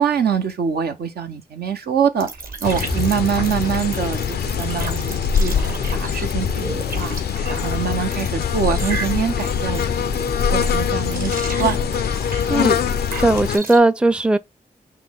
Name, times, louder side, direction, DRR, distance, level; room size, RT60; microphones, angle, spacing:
voice 1, 0.0-2.3 2.6-5.5 5.9-6.6 6.9-7.2 7.5-10.0 10.5-11.3 11.6-11.8, right 7 dB, 80° right, 0.8 m, -24 dB
sound 1, 2.2-13.8, right 3 dB, 60° right, 1.6 m, -34 dB
sound 2, 2.6-13.6, left 7 dB, 80° left, 0.4 m, -23 dB
voice 2, 12.5-12.8 13.2-14.4, right 2 dB, 5° right, 0.4 m, -17 dB
5.8 x 2.2 x 3.4 m
cardioid pair, 45°, 16 cm